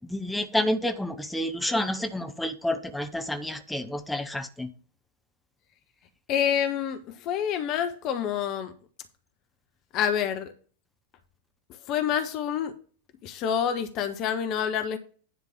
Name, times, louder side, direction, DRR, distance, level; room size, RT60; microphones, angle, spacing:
voice 1, 0.1-4.7, left 1 dB, 5° left, 0.8 m, -29 dB
voice 2, 6.3-8.7 9.9-10.5 11.7-12.8 13.2-15.0, left 8 dB, 40° left, 1.1 m, -27 dB
10.5 x 3.7 x 7.4 m
figure-of-eight pair, 90°, 0 cm